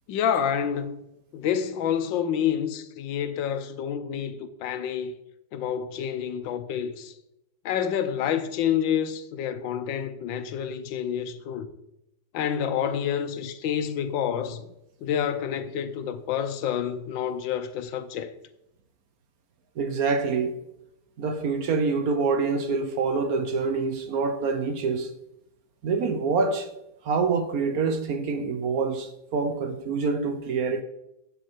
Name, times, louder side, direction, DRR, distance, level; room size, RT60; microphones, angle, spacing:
voice 1, 0.1-1.0 1.3-5.1 5.5-7.1 7.6-11.7 12.3-14.7 15.0-18.3, left 8 dB, 85° left, 1.5 m, -28 dB
voice 2, 19.8-20.6 21.2-25.1 25.8-26.7 27.0-30.8, right 4 dB, 60° right, 1.2 m, -26 dB
8.5 x 7.4 x 4.5 m
omnidirectional pair, 2.0 m